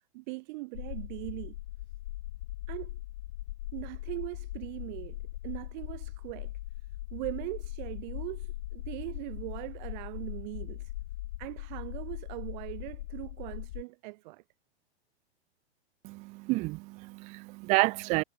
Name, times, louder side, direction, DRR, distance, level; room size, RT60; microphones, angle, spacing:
voice 1, 0.1-1.6 2.7-3.0 3.7-6.5 7.1-10.9 11.4-14.4, right 24 dB, 45° right, 1.7 m, -40 dB
sound 1, 0.7-13.8, left 16 dB, 50° left, 1.3 m, -40 dB
voice 2, 16.0-18.2, right 25 dB, 20° right, 0.4 m, -29 dB
hypercardioid pair, 130°, 33 cm